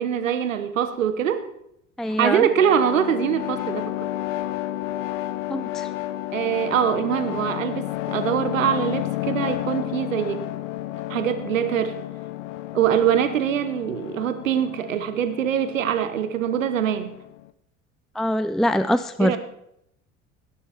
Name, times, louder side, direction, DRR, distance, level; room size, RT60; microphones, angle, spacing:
voice 1, 0.0-1.5 2.2-3.8 6.3-10.5 11.1-11.9 12.7-17.1 19.2-19.4, right 9 dB, 80° right, 11 dB, 1.1 m, -23 dB
voice 2, 2.0-2.5 5.5-5.9 18.1-19.4, equal, ahead, 13 dB, 0.5 m, -23 dB
sound 1, 2.1-17.5, left 15 dB, 70° left, 0.7 m, -32 dB
17.5 x 11.0 x 4.4 m, 0.76 s
figure-of-eight pair, 60°, 39 cm